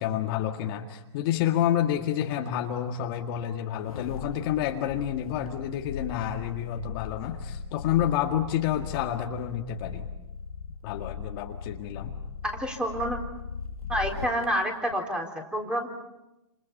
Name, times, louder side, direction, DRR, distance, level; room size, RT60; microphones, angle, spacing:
voice 1, 0.0-10.1 10.8-12.1, left 11 dB, 40° left, 3 dB, 2.0 m, -29 dB
sound 1, 3.8-14.4 14.9-15.0, left 6 dB, 85° left, 2.0 m, -39 dB
voice 2, 12.4-13.2 13.9-15.9, equal, 5° right, 2 dB, 4.1 m, -28 dB
29.5 x 28.0 x 5.5 m, 0.95 s
hypercardioid pair, 140°, 18 cm